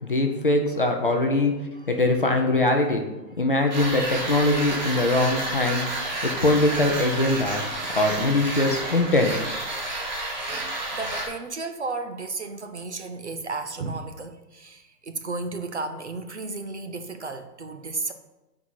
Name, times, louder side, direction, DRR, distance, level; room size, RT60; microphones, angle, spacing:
voice 1, 0.0-1.5 1.9-3.0 3.4-5.9 6.2-9.4, left 2 dB, 35° left, 3 dB, 0.5 m, -22 dB
sound 1, 3.7-11.3, right 2 dB, 30° right, 0.9 m, -30 dB
voice 2, 10.9-18.1, right 3 dB, 45° right, 7 dB, 0.5 m, -33 dB
6.1 x 4.7 x 5.6 m, 1.0 s
hypercardioid pair, 170°, 49 cm